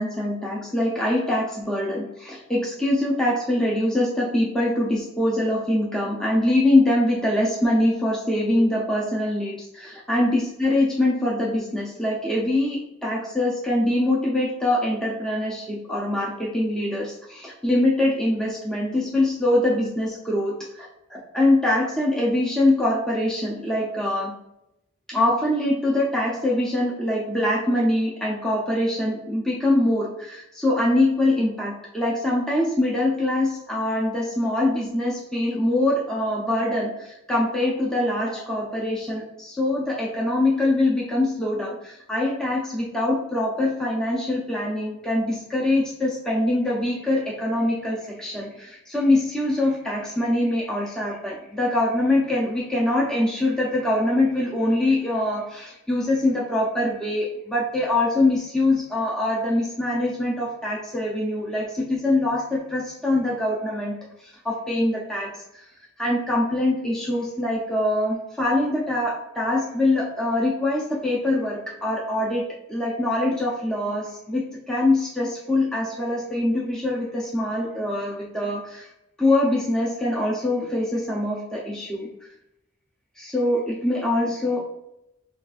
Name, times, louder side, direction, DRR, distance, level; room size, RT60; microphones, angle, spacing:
voice 1, 0.0-24.3 25.1-65.7 66.0-78.9 79.2-82.1 83.2-84.6, left 1 dB, 5° left, -5 dB, 0.5 m, -23 dB
6.1 x 2.4 x 2.4 m, 0.87 s
head